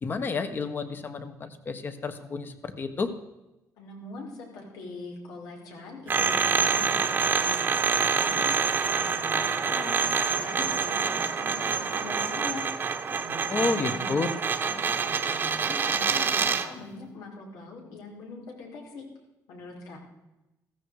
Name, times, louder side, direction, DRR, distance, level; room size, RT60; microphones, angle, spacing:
voice 1, 0.0-3.1 13.5-14.3, left 4 dB, 30° left, 9 dB, 1.4 m, -30 dB
voice 2, 3.8-10.0 10.3-12.6 13.1-19.0 19.5-20.0, left 3 dB, 85° left, 0 dB, 5.2 m, -42 dB
sound 1, 6.1-16.7, right 5 dB, 35° right, 1.2 m, -26 dB
15.5 x 14.5 x 4.9 m, 0.96 s
cardioid pair, 145°, 6 cm